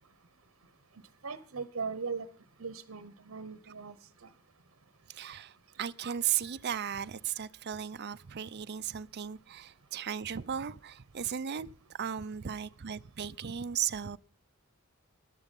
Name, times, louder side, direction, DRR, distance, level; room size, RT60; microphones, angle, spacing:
voice 1, 1.2-2.3 2.6-4.0 4.2-4.3, right 5 dB, 70° right, 1.0 m, -38 dB
voice 2, 5.1-5.5 5.8-11.7 12.0-14.2, right 9 dB, 55° right, 0.6 m, -35 dB
14.0 x 11.5 x 5.4 m
head